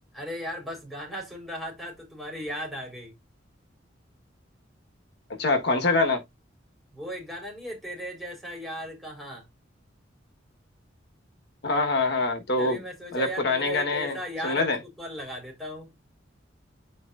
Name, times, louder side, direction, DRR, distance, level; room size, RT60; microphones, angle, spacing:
voice 1, 0.1-3.1 6.9-9.5 12.6-15.9, equal, ahead, 4.4 m, -37 dB
voice 2, 5.4-6.2 11.6-12.8 13.1-14.2 14.4-14.8, left 3 dB, 60° left, 1.4 m, -24 dB
10.5 x 4.4 x 2.5 m
head